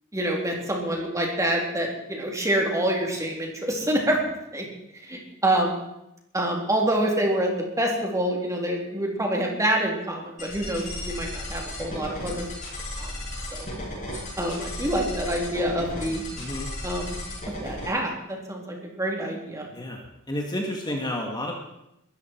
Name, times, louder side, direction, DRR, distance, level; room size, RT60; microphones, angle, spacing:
voice 1, 0.1-4.2 4.5-4.6 5.0-5.8 6.3-12.4 13.0-13.1 13.5-13.7 14.4-16.2 16.8-17.2 17.6-19.7, right 1 dB, 15° right, 0 dB, 3.5 m, -26 dB
sound 1, 10.4-17.9, left 1 dB, 35° left, 7.7 m, -35 dB
voice 2, 16.3-16.7 19.7-21.6, left 1 dB, 20° left, 0 dB, 2.1 m, -31 dB
21.5 x 14.0 x 4.7 m, 0.84 s
head